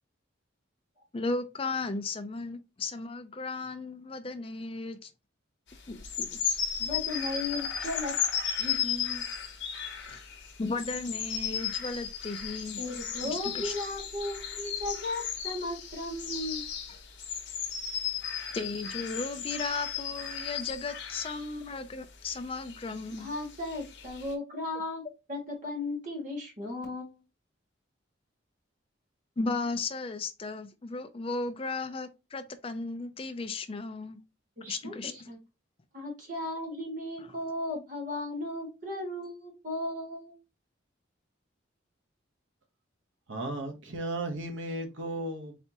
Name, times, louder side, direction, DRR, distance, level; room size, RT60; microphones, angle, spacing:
voice 1, 1.1-5.1 5.9-6.6 10.1-10.2 10.6-12.8 13.2-13.7 18.5-23.3 29.4-34.2 34.7-35.1, left 3 dB, 30° left, 0.4 m, -35 dB
sound 1, 5.9-21.5 22.3-24.3, left 8 dB, 60° left, 0.9 m, -35 dB
voice 2, 6.8-8.1 8.6-9.2 12.8-16.6 23.2-25.0 25.3-27.2 34.6-35.4 35.9-40.3, left 2 dB, 40° right, 1.7 m, -36 dB
voice 3, 43.3-45.6, right 1 dB, 75° right, 1.0 m, -35 dB
4.2 x 3.4 x 2.9 m
head